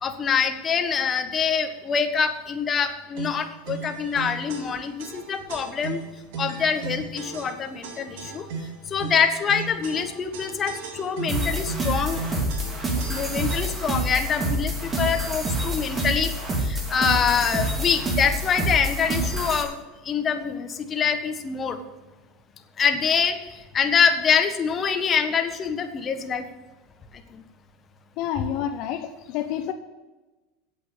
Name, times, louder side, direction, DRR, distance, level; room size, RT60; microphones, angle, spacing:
voice 1, 0.0-6.0 6.4-8.4 8.9-12.2 13.1-16.3 16.6-19.8 20.0-21.8 22.8-23.3 23.7-26.4, left 6 dB, 30° left, 6 dB, 1.4 m, -25 dB
sound 1, 3.2-14.0, right 5 dB, 75° right, 2.1 m, -37 dB
sound 2, 11.3-19.6, right 1 dB, 20° right, 3.0 m, -27 dB
voice 2, 28.2-29.7, left 10 dB, 55° left, 7 dB, 0.9 m, -29 dB
8.8 x 8.3 x 8.4 m, 1.1 s
supercardioid pair, 120°, 0 cm